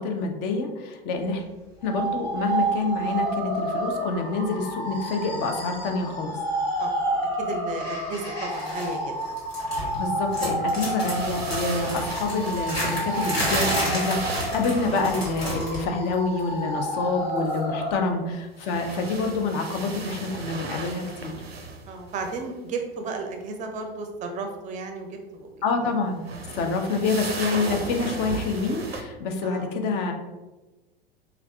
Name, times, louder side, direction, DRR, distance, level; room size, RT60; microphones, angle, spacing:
voice 1, 0.0-1.4 1.8-6.3 9.9-21.4 25.6-26.2 26.5-30.1, left 3 dB, 35° left, 4 dB, 0.5 m, -27 dB
sound 1, 1.8-17.9, right 1 dB, 60° left, 1.3 m, -30 dB
voice 2, 6.8-9.4 17.8-17.9 21.9-25.9 26.5-26.8 29.4-29.7, right 3 dB, 25° right, 4 dB, 0.5 m, -34 dB
sound 2, 8.5-9.0 9.2-10.0 10.3-15.9 16.1-16.4 17.5-17.6, equal, 85° left, 1.5 m, -31 dB
sound 3, 11.0-15.6 18.4-22.4 26.1-29.0, right 3 dB, 85° right, 0.5 m, -35 dB
3.4 x 2.3 x 3.3 m, 1.1 s
figure-of-eight pair, 80°, 29 cm